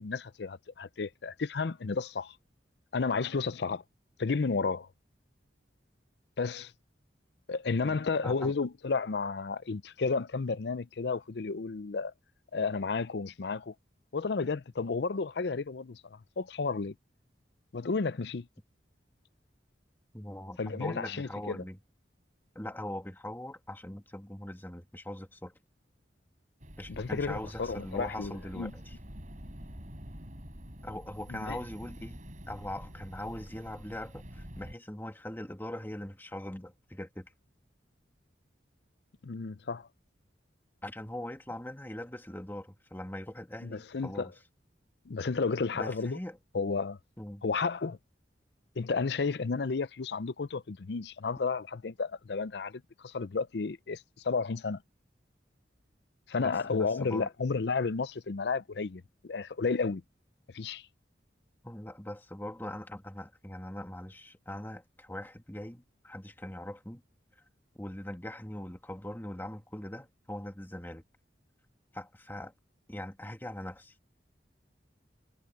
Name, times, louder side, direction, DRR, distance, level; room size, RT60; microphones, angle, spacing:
voice 1, 0.0-2.3 2.9-3.8 4.2-4.9 6.4-6.7 7.5-12.1 12.5-13.7 14.1-16.9 17.7-18.5 20.6-21.6 26.9-28.7 31.3-31.6 39.2-39.9 43.6-44.3 45.1-46.2 46.5-47.0 47.4-48.0 48.8-54.8 56.3-60.0 60.5-60.8, left 4 dB, 65° left, 0.6 m, -32 dB
voice 2, 7.8-8.5 20.1-21.8 22.5-25.5 26.8-29.0 30.8-32.2 32.5-37.3 40.8-44.3 45.7-46.4 47.2-47.4 56.4-57.3 61.6-67.0 67.7-71.0 71.9-72.5 72.9-73.9, left 1 dB, 10° left, 1.8 m, -41 dB
sound 1, 26.6-34.7, equal, 45° right, 6.7 m, -47 dB
head